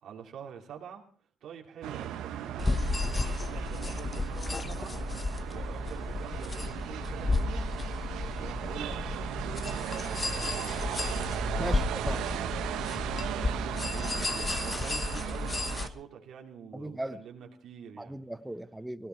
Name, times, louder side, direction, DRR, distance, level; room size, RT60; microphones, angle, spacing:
voice 1, 0.0-1.0 1.4-5.0 5.5-7.7 8.4-10.9 13.3-18.2, right 8 dB, 70° right, 2 dB, 2.8 m, -46 dB
sound 1, 1.8-15.9, right 10 dB, 90° right, 1.3 m, -37 dB
sound 2, 2.6-15.9, left 3 dB, 25° left, 1.1 m, -33 dB
voice 2, 11.6-12.2 16.7-17.2 18.0-19.1, right 1 dB, 10° right, 13 dB, 1.0 m, -37 dB
18.0 x 16.5 x 4.6 m, 0.43 s
cardioid pair, 90°, 0 cm